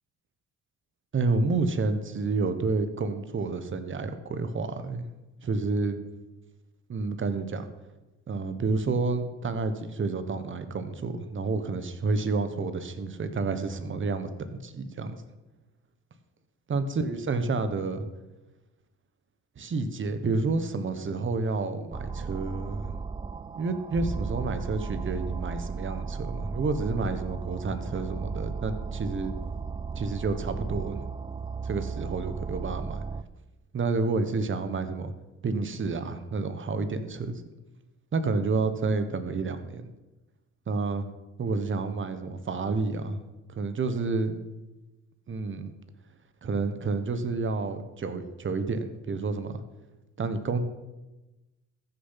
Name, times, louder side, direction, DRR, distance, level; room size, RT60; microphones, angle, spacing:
voice 1, 1.1-5.0 5.4-6.0 6.9-7.7 8.3-15.2 16.7-18.1 19.6-23.0 23.6-29.3 29.9-31.0 31.6-33.0 33.7-35.1 35.4-37.4 38.1-39.8 40.7-41.0 41.4-43.2 43.5-44.4 45.3-45.7 46.4-49.6 50.2-50.6, right 3 dB, 40° right, 10 dB, 1.3 m, -29 dB
sound 1, 21.9-33.2, right 5 dB, 15° right, 0.4 m, -35 dB
14.0 x 7.0 x 5.8 m, 1.1 s
cardioid pair, 90°, 30 cm